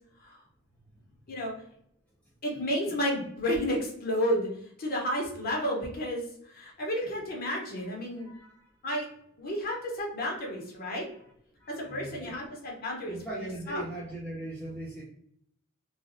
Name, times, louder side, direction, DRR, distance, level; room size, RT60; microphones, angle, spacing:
voice 1, 2.4-8.3 8.8-9.1 9.4-11.0 11.7-13.8, equal, 45° left, -2 dB, 0.9 m, -32 dB
voice 2, 8.2-8.5 11.6-12.4 13.1-15.0, right 1 dB, 5° left, -6 dB, 0.5 m, -40 dB
3.1 x 2.3 x 2.5 m, 0.71 s
head